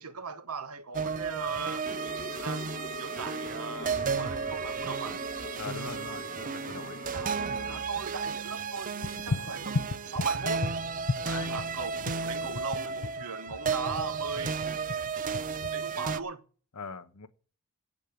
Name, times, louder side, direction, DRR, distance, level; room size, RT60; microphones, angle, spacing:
voice 1, 0.0-1.9 2.3-2.7 3.0-5.2 7.1-7.4 7.7-10.7 11.5-14.6 15.7-16.4, right 5 dB, 75° right, 1.1 m, -39 dB
sound 1, 0.9-16.2, right 5 dB, 35° right, 0.5 m, -33 dB
sound 2, 1.8-7.8, left 3 dB, 35° left, 1.1 m, -43 dB
voice 2, 5.6-7.0 11.2-11.5 13.2-13.3 16.7-17.3, left 4 dB, 85° left, 1.2 m, -41 dB
sound 3, 9.0-15.7, left 3 dB, 60° left, 0.6 m, -35 dB
8.7 x 8.2 x 9.2 m
head